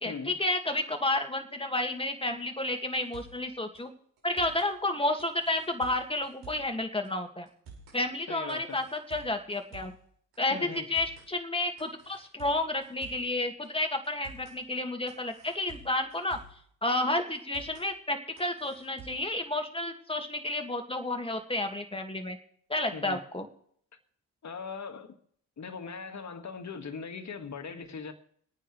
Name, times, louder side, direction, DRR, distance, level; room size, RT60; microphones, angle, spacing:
voice 1, 0.0-3.9 4.2-7.5 7.9-9.9 10.4-16.4 16.8-22.4 22.7-23.5, left 2 dB, 15° left, 2.1 m, -31 dB
sound 1, 2.9-3.5 3.8-3.9 4.2-4.7 5.2-6.8 7.0-7.1 7.5-8.0 8.5-10.1 10.3-10.4 10.8-11.3 11.8-13.3 13.6-13.7 14.0-14.6 15.1-16.6 16.9-17.0 17.3-17.9 18.4-19.3, right 4 dB, 75° right, 5.6 m, -50 dB
voice 2, 8.3-8.8 10.5-10.9 22.9-23.2 24.4-25.2 25.6-28.1, left 5 dB, 45° left, 1.9 m, -40 dB
24.0 x 9.2 x 3.3 m
hypercardioid pair, 50°, 39 cm